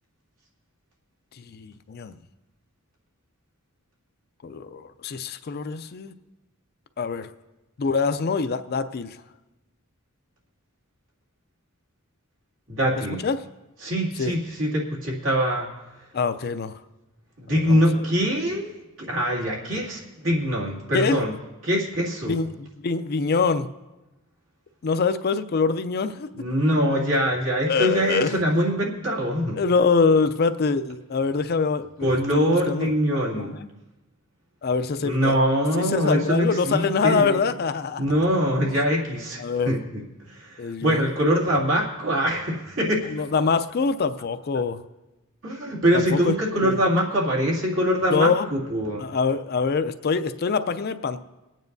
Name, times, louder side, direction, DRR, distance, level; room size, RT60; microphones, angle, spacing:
voice 1, 1.4-2.1 4.4-6.1 7.0-7.3 7.8-9.2 13.2-13.4 14.2-14.3 16.1-16.8 17.5-18.0 20.9-21.2 22.3-23.7 24.8-26.3 27.6-28.4 29.6-32.9 33.3-33.7 34.6-35.3 35.7-38.0 39.4-39.8 40.6-41.0 43.1-44.8 45.9-46.3 46.6-46.8 48.1-48.5 49.0-51.2, left 4 dB, 45° left, 10 dB, 0.4 m, -24 dB
voice 2, 12.7-13.2 13.8-15.7 17.4-21.3 21.6-22.4 26.4-29.6 32.0-33.5 35.0-37.4 38.0-40.0 40.3-43.1 45.4-49.1, equal, 65° right, -3 dB, 2.4 m, -23 dB
24.0 x 9.1 x 2.7 m, 1.0 s
head